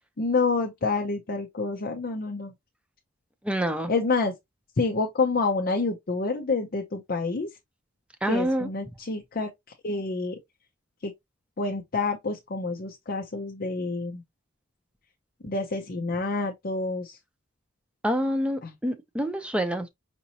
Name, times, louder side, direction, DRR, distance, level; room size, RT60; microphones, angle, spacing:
voice 1, 0.2-2.5 3.9-4.3 4.8-7.5 8.3-9.5 9.8-10.4 11.0-11.1 11.6-14.2 15.4-17.2 18.6-18.7, left 3 dB, 50° left, 0.6 m, -28 dB
voice 2, 3.4-3.9 8.2-8.7 18.0-19.9, equal, 5° right, 0.6 m, -27 dB
5.2 x 2.9 x 2.7 m
head